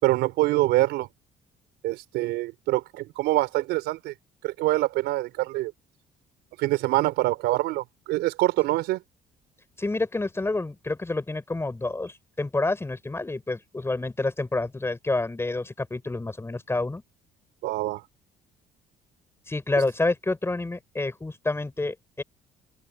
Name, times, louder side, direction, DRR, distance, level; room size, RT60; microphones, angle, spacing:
voice 1, 0.0-1.1 1.8-4.1 4.4-5.7 6.6-9.0 17.6-18.0, right 18 dB, 90° right, 4.3 m, -25 dB
voice 2, 9.8-17.0 19.5-22.2, left 2 dB, 15° left, 6.6 m, -28 dB
cardioid pair, 110°, 17 cm